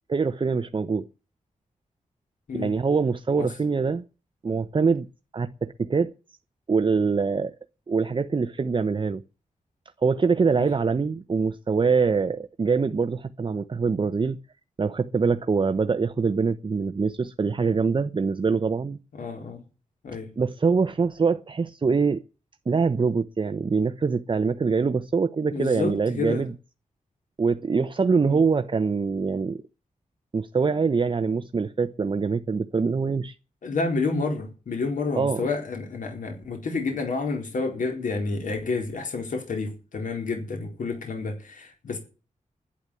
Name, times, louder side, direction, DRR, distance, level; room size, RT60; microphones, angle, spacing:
voice 1, 0.1-1.0 2.5-4.0 4.4-5.1 5.3-6.1 6.7-7.5 7.9-9.2 10.0-14.4 14.8-19.0 20.4-22.2 22.7-26.5 27.4-29.6 30.3-33.4 35.2-35.5, right 5 dB, 40° right, 0.8 m, -24 dB
voice 2, 19.1-19.6 20.0-20.3 25.5-26.4 28.2-28.4 33.6-42.0, left 3 dB, 80° left, 4.2 m, -29 dB
11.5 x 10.5 x 8.4 m
wide cardioid pair, 110°, 13 cm